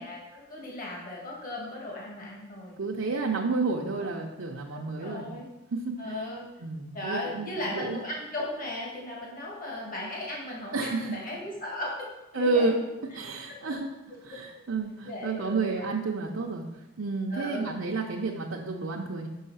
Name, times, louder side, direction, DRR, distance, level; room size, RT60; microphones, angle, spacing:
voice 1, 0.0-2.7 3.0-3.3 4.0-4.4 4.7-5.4 6.0-6.4 6.9-11.9 12.3-12.8 13.5-13.6 15.1-15.9 17.3-17.8, left 1 dB, 45° left, -3 dB, 1.9 m, -37 dB
voice 2, 2.8-5.4 5.7-6.2 6.6-8.0 10.7-11.2 12.3-12.7 13.1-13.9 14.2-16.7 17.0-19.3, right 3 dB, 75° right, -2 dB, 0.7 m, -30 dB
5.6 x 5.5 x 5.6 m, 0.98 s
head